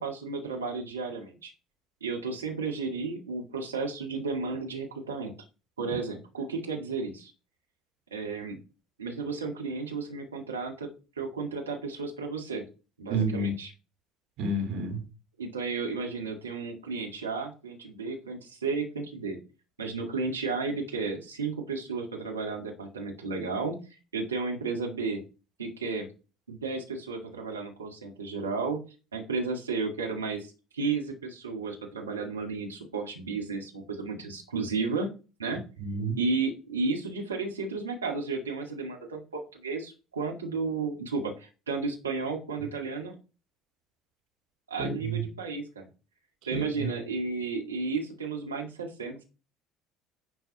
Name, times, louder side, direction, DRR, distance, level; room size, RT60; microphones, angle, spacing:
voice 1, 0.0-1.5 2.0-5.3 5.8-7.3 8.1-8.6 9.0-10.9 11.2-12.6 13.0-13.7 15.4-19.4 19.8-23.8 24.1-25.2 25.6-26.1 26.5-28.8 29.1-35.1 35.4-35.6 36.2-43.1 44.7-45.8 46.5-49.2, right 4 dB, 85° right, 2.1 m, -33 dB
voice 2, 13.1-13.5 14.4-15.0 35.8-36.2 44.8-45.2 46.5-46.9, right 2 dB, 60° right, 3.2 m, -30 dB
11.0 x 4.7 x 4.8 m
figure-of-eight pair, 60°, 0 cm